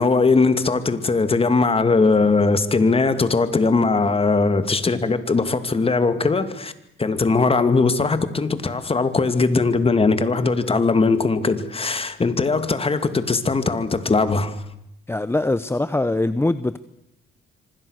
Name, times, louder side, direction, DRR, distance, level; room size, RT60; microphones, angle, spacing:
voice 1, 0.0-6.7 7.0-14.6, left 4 dB, 30° left, 2.5 m, -20 dB
voice 2, 15.1-16.8, left 2 dB, 10° left, 0.9 m, -22 dB
26.0 x 25.5 x 6.6 m
cardioid pair, 90°, 20 cm